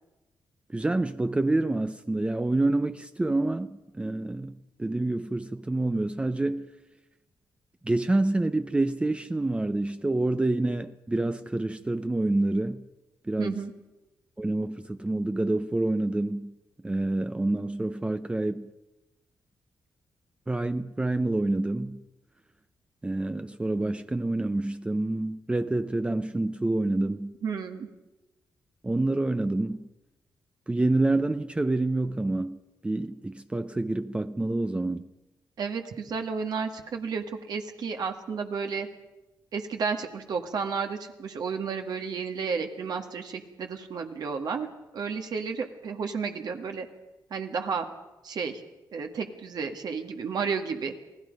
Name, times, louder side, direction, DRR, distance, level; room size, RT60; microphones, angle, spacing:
voice 1, 0.7-6.7 7.8-12.9 13.3-13.7 14.4-16.5 16.8-18.7 20.5-22.0 23.0-27.3 28.8-29.9 30.7-35.1, right 2 dB, 15° right, 0.6 m, -27 dB
voice 2, 13.4-13.7 27.4-27.9 35.6-38.9 39.5-44.7 44.9-46.9 47.3-47.9 48.2-48.6 48.9-51.0, right 5 dB, 70° right, 1.8 m, -32 dB
28.0 x 18.0 x 5.3 m
cardioid pair, 95°, 7 cm